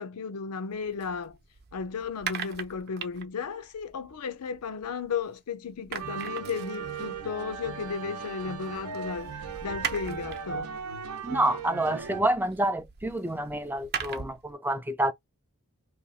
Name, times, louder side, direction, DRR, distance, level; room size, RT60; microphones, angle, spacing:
voice 1, 0.0-1.4 1.7-9.4 9.6-10.8, left 5 dB, 85° left, 0.5 m, -34 dB
sound 1, 0.7-5.4 5.6-14.5, right 7 dB, 45° right, 0.7 m, -41 dB
sound 2, 6.0-12.2, right 6 dB, 85° right, 0.7 m, -38 dB
voice 2, 11.2-15.1, right 1 dB, 10° right, 0.3 m, -28 dB
2.9 x 2.3 x 3.9 m
head